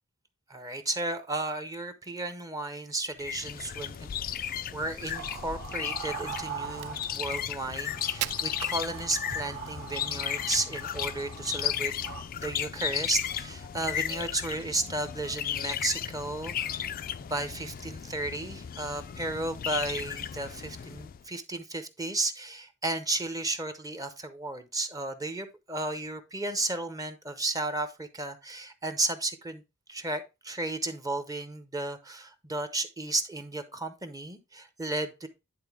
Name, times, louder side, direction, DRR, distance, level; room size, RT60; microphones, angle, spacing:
voice 1, 0.5-11.9 12.4-16.9 17.3-29.6 29.9-35.3, right 2 dB, 15° right, 9 dB, 0.7 m, -33 dB
sound 1, 3.2-21.2, left 9 dB, 40° left, 0.4 m, -35 dB
Crack, 4.9-9.5, right 13 dB, 70° right, 0.4 m, -41 dB
sound 2, 5.1-7.4 7.7-12.2, right 6 dB, 55° right, 1.4 m, -42 dB
10.0 x 3.7 x 3.5 m, 0.26 s
head